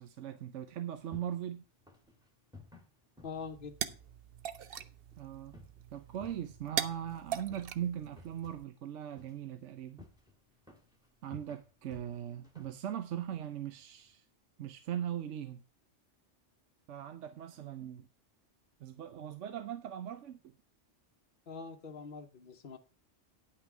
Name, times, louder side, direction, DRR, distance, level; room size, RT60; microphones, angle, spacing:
voice 1, 0.0-1.6 5.2-5.6 5.9-10.0 11.2-14.2 14.6-15.6 16.9-18.1 18.8-20.4, right 10 dB, 80° right, 1.0 m, -40 dB
sound 1, 0.7-14.1, left 3 dB, 5° right, 1.8 m, -59 dB
voice 2, 3.2-4.0 21.5-22.8, left 5 dB, 50° left, 1.0 m, -44 dB
sound 2, 3.3-8.6, right 9 dB, 60° right, 0.8 m, -41 dB
9.8 x 5.9 x 5.9 m
omnidirectional pair, 1.2 m